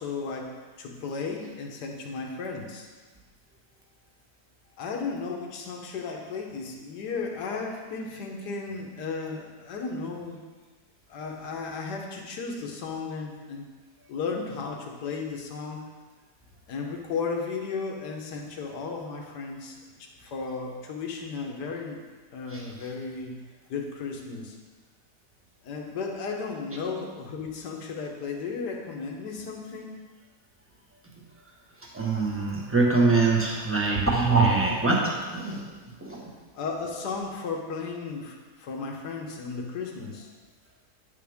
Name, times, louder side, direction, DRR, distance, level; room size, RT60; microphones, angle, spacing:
voice 1, 0.0-2.9 4.8-10.4 11.1-13.6 14.1-15.9 16.7-22.0 22.3-23.4 23.7-24.5 25.6-30.0 36.5-40.3, left 4 dB, 80° left, 1 dB, 1.6 m, -34 dB
voice 2, 31.8-36.2, right 3 dB, 10° right, -3 dB, 1.1 m, -24 dB
9.6 x 7.0 x 3.5 m, 1.4 s
omnidirectional pair, 1.8 m